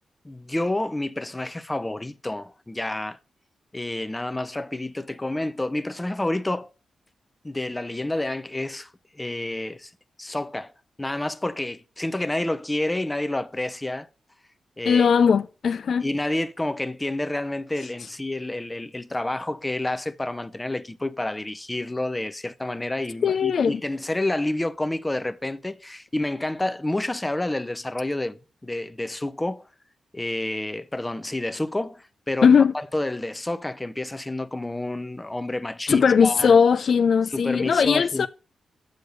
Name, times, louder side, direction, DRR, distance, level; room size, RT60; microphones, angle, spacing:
voice 1, 0.2-3.2 3.7-6.7 7.4-9.9 10.2-10.7 11.0-14.1 14.8-15.1 16.0-29.7 30.1-36.6 37.3-38.3, left 1 dB, 15° left, 0.7 m, -29 dB
voice 2, 14.9-16.1 23.2-23.8 32.4-32.7 35.9-38.3, left 6 dB, 65° left, 0.3 m, -19 dB
6.8 x 6.6 x 6.6 m
cardioid pair, 65°, 0 cm